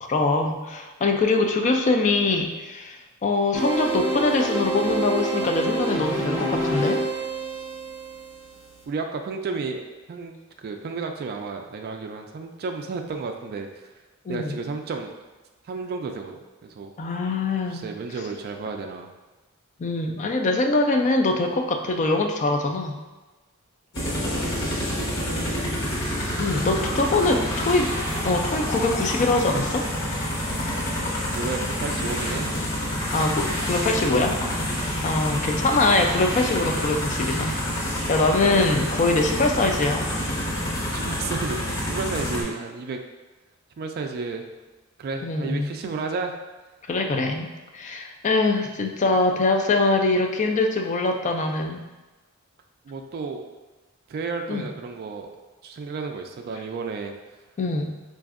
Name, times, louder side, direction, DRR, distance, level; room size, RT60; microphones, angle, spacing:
voice 1, 0.0-7.0 14.3-14.6 17.0-17.9 19.8-23.0 26.4-27.9 28.2-29.9 33.1-34.6 35.0-40.1 45.2-45.7 46.9-51.8 54.5-54.7 57.6-57.9, left 2 dB, 35° left, 4 dB, 0.3 m, -23 dB
sound 1, 3.5-8.8, right 2 dB, 10° right, 0.6 m, -27 dB
voice 2, 8.9-9.8 10.1-13.9 14.3-15.1 15.6-16.9 17.7-19.1 24.0-25.1 26.5-27.0 27.3-27.7 31.3-32.5 38.4-38.6 40.8-43.0 43.8-44.4 45.0-46.3 52.9-53.4 54.1-55.3 55.6-57.1, right 4 dB, 45° right, 4 dB, 0.3 m, -32 dB
sound 2, 23.9-42.4, equal, 55° left, 1.1 m, -28 dB
4.8 x 2.5 x 2.4 m, 1.2 s
head